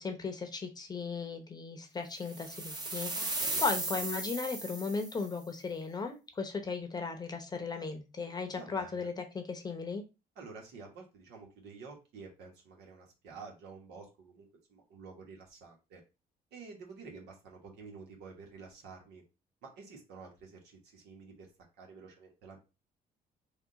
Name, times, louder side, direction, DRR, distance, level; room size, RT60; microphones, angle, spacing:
voice 1, 0.0-10.0, left 4 dB, 25° left, 4 dB, 0.8 m, -36 dB
sound 1, 2.3-5.3, right 2 dB, 25° right, 0.9 m, -36 dB
voice 2, 3.1-4.0 8.5-9.1 10.3-16.0 16.5-19.2 19.6-21.5 21.8-22.6, right 4 dB, 80° right, 0 dB, 1.3 m, -50 dB
3.5 x 2.4 x 3.8 m, 0.29 s
cardioid pair, 110°, 17 cm